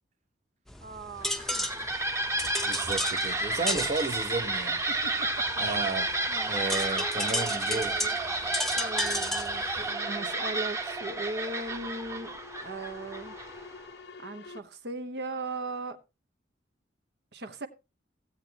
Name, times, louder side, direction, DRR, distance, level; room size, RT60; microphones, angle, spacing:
sound 1, 0.7-9.9, left 1 dB, ahead, 0.7 m, -35 dB
voice 1, 0.8-1.9 4.9-5.5 6.3-6.6 7.2-7.4 7.7-8.2 8.8-12.3 12.6-13.3 14.2-16.0 17.3-17.7, right 2 dB, 60° right, 1.0 m, -38 dB
sound 2, 1.2-13.8, right 2 dB, 15° right, 1.0 m, -31 dB
voice 2, 2.6-4.8 5.6-6.1 6.5-8.0, right 3 dB, 35° right, 0.8 m, -33 dB
sound 3, 5.9-14.6, left 3 dB, 60° left, 0.8 m, -50 dB
15.5 x 8.2 x 2.9 m
head